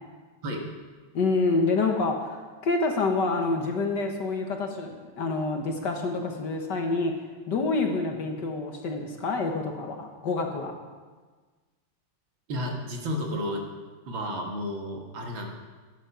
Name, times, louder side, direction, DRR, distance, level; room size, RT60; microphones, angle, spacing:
voice 1, 1.1-7.1 7.5-10.7, left 3 dB, 55° left, 3 dB, 1.6 m, -27 dB
voice 2, 12.5-13.7 14.1-15.5, equal, 60° right, 1 dB, 2.2 m, -32 dB
13.0 x 10.5 x 5.8 m, 1.4 s
omnidirectional pair, 2.4 m